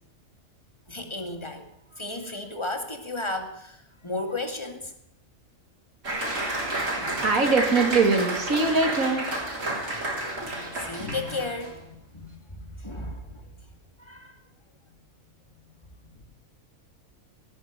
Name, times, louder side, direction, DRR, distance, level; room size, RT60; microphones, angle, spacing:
voice 1, 0.9-4.9 10.4-11.9 12.1-13.5 14.0-14.3, left 2 dB, 20° left, 6 dB, 2.1 m, -34 dB
Applause, 6.0-11.8, right 2 dB, 65° right, 4.0 m, -30 dB
voice 2, 7.2-9.3, right 3 dB, 85° right, 4 dB, 3.2 m, -22 dB
17.5 x 13.0 x 6.1 m, 0.77 s
omnidirectional pair, 1.4 m